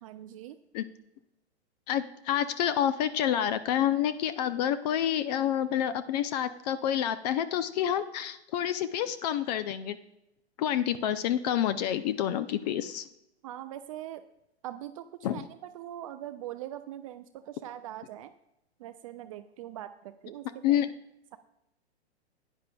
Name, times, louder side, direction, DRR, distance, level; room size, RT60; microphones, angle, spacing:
voice 1, 0.0-0.6 13.4-14.2 14.6-15.1 15.3-15.4 15.7-18.3 18.8-20.8, right 12 dB, 30° right, 10 dB, 0.4 m, -42 dB
voice 2, 1.9-10.0 10.6-13.0 15.2-15.5 20.6-20.9, left 10 dB, 40° left, 13 dB, 0.5 m, -28 dB
16.0 x 9.9 x 2.3 m, 0.86 s
hypercardioid pair, 115°, 34 cm